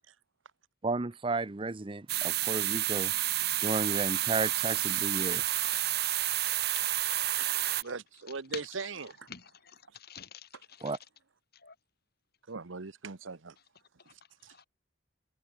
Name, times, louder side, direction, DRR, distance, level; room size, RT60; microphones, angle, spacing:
voice 1, 0.8-3.1 3.6-5.4 10.8-11.0, right 3 dB, 25° right, 0.7 m, -33 dB
sound 1, 2.1-7.8, right 14 dB, 55° right, 1.4 m, -30 dB
voice 2, 5.7-6.1 6.7-7.0 7.8-7.9 8.5-8.6 9.3-11.0 11.6-11.7 14.6-14.7, left 8 dB, 55° left, 4.8 m, -47 dB
voice 3, 7.8-9.3 12.5-13.5 14.4-14.5, right 4 dB, 90° right, 1.1 m, -40 dB
head